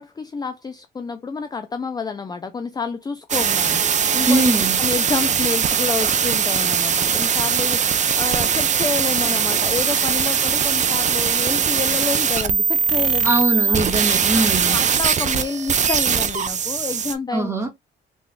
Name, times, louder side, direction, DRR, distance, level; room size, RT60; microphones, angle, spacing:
voice 1, 0.0-4.4 4.8-7.8 8.1-13.3 13.7-13.8 14.6-17.5, left 5 dB, 20° left, 0.4 m, -29 dB
sound 1, 3.3-17.1, right 7 dB, 35° right, 0.5 m, -20 dB
voice 2, 4.2-4.8 13.2-14.8 17.3-17.7, right 1 dB, 15° right, 1.5 m, -21 dB
3.6 x 3.4 x 2.3 m
cardioid pair, 90°, 20 cm